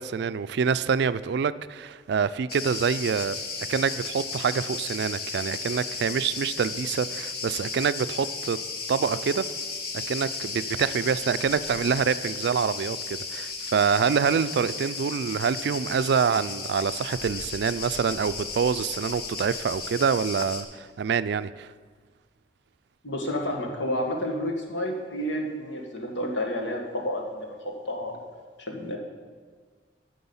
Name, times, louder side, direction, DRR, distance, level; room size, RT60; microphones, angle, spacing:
voice 1, 0.0-3.4 3.7-8.6 8.9-9.4 9.9-21.7, right 6 dB, 65° right, 15 dB, 0.3 m, -26 dB
Cricket, 2.5-20.6, left 4 dB, 60° left, 1.1 m, -35 dB
voice 2, 23.0-28.2 28.6-29.0, left 1 dB, 80° left, 1 dB, 1.7 m, -30 dB
9.5 x 6.3 x 7.0 m, 1.5 s
head